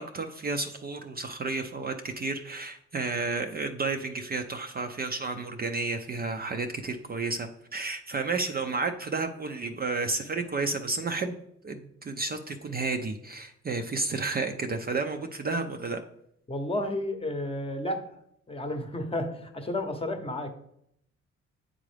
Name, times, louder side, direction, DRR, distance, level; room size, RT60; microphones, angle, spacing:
voice 1, 0.0-11.4 11.6-16.0, right 3 dB, 30° right, 5 dB, 0.5 m, -31 dB
voice 2, 16.5-18.1 18.5-20.5, left 1 dB, 20° left, 6 dB, 0.9 m, -32 dB
8.9 x 3.7 x 3.3 m, 0.73 s
cardioid pair, 90°, 30 cm